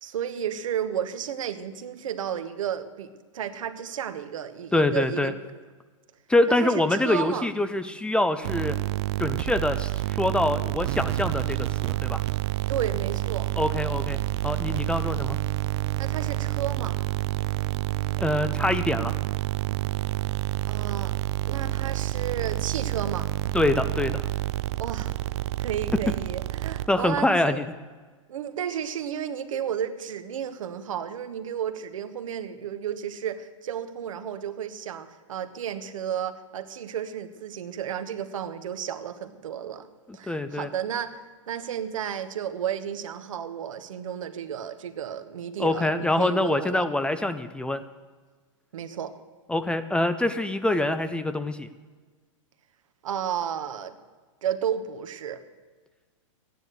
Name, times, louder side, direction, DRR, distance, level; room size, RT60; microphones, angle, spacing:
voice 1, 0.0-5.4 6.5-7.5 12.7-13.5 16.0-17.0 20.6-21.1 21.5-23.3 24.8-25.1 25.6-27.6 28.3-39.9 40.1-46.8 48.7-49.1 53.0-53.9 54.4-55.4, right 9 dB, 75° right, 9 dB, 1.4 m, -32 dB
voice 2, 4.7-5.3 6.3-8.8 9.2-12.2 13.6-14.2 14.4-15.4 18.2-19.1 23.5-24.3 26.9-27.6 40.1-40.7 45.6-47.8 49.5-51.7, left 2 dB, 5° left, 11 dB, 0.5 m, -25 dB
sound 1, 8.4-27.2, right 16 dB, 55° right, 0.4 m, -28 dB
13.5 x 10.0 x 8.0 m, 1.4 s
hypercardioid pair, 125°, 17 cm